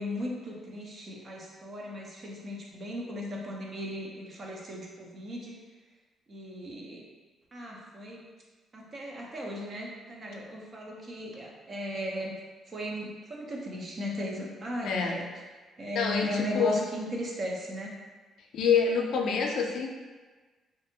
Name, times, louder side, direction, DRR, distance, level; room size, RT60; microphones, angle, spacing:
voice 1, 0.0-5.6 6.3-7.1 7.5-8.2 8.7-12.4 12.7-15.3 15.8-18.0, left 1 dB, 45° right, -2 dB, 0.6 m, -36 dB
voice 2, 14.8-15.2 16.0-16.8 18.5-19.9, left 6 dB, 75° left, 2 dB, 0.4 m, -27 dB
2.6 x 2.5 x 2.6 m, 1.3 s
cardioid pair, 90°, 0 cm